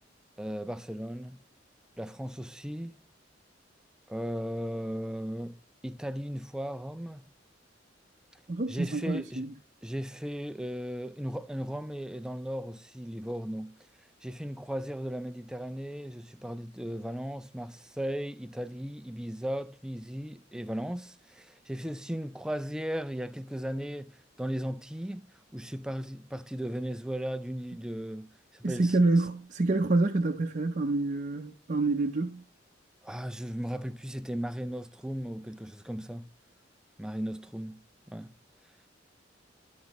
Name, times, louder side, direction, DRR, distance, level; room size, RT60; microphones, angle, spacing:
voice 1, 0.4-1.4 2.0-3.0 4.1-7.2 8.7-9.5 9.8-13.8 14.2-29.0 33.0-36.3 37.0-38.3, equal, 5° right, 0.3 m, -36 dB
voice 2, 8.5-9.5 28.6-32.4, right 2 dB, 40° right, 0.6 m, -27 dB
11.5 x 5.2 x 3.0 m
head